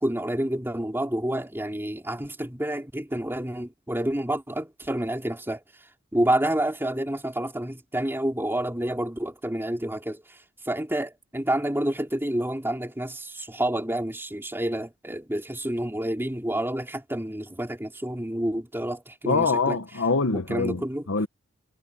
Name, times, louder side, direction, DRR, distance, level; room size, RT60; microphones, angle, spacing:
voice 1, 0.0-5.6 6.1-10.4 10.6-19.8 20.3-21.1, right 1 dB, 10° right, 3.5 m, -29 dB
voice 2, 19.3-21.3, left 4 dB, 65° left, 1.1 m, -25 dB
head